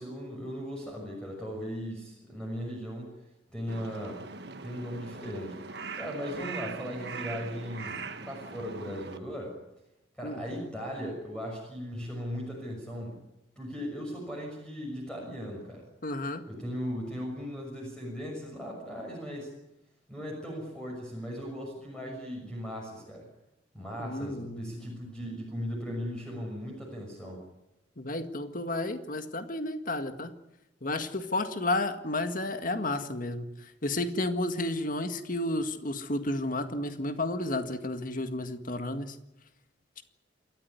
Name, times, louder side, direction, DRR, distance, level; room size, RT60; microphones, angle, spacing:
voice 1, 0.0-3.2 3.5-4.2 4.6-5.6 5.9-9.6 10.2-13.2 13.6-15.8 16.5-19.5 20.1-23.3 23.7-27.4, equal, 5° left, -2 dB, 6.3 m, -38 dB
Crow, 3.7-9.2, right 4 dB, 60° right, 1.6 m, -41 dB
voice 2, 16.0-16.4 24.0-24.6 28.0-30.3 30.8-39.2 40.0-40.1, left 2 dB, 45° left, 8 dB, 1.9 m, -32 dB
28.0 x 14.0 x 9.6 m, 0.91 s
head